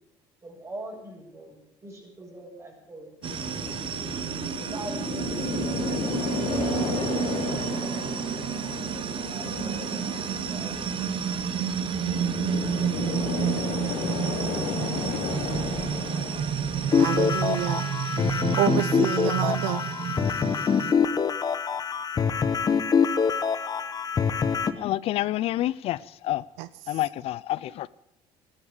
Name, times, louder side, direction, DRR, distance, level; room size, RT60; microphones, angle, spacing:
voice 1, 0.4-3.1 4.6-7.0 7.3-8.3 8.8-11.1 12.4-13.6, right 1 dB, 25° right, 7.0 m, -43 dB
sound 1, 3.2-17.6, left 5 dB, 80° left, 3.1 m, -33 dB
sound 2, 3.2-20.9, right 8 dB, 50° right, 1.0 m, -30 dB
sound 3, 16.9-24.7, left 6 dB, 35° left, 1.0 m, -25 dB
voice 2, 17.0-18.2 18.6-19.8 26.6-26.9, right 16 dB, 85° right, 0.5 m, -29 dB
voice 3, 24.8-26.0 26.2-26.4 26.9-27.9, left 14 dB, 65° left, 0.4 m, -28 dB
13.0 x 10.0 x 8.2 m
supercardioid pair, 90°, 11 cm